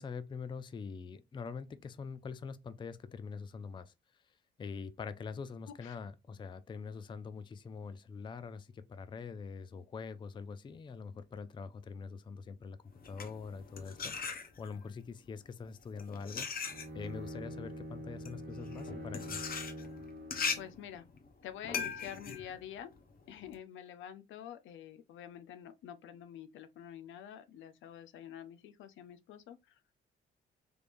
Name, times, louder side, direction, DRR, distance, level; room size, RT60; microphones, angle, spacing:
voice 1, 0.0-3.9 4.6-12.8 13.0-16.7 16.9-19.4, left 5 dB, 25° left, 0.4 m, -44 dB
voice 2, 5.7-6.0 20.5-21.1 21.4-22.9 23.3-29.8, left 10 dB, 80° left, 0.5 m, -48 dB
sound 1, 12.9-14.9 15.7-23.6, left 5 dB, 50° left, 0.8 m, -40 dB
Bowed string instrument, 16.6-20.9, equal, 70° right, 1.3 m, -45 dB
3.4 x 3.2 x 2.5 m
cardioid pair, 90°, 20 cm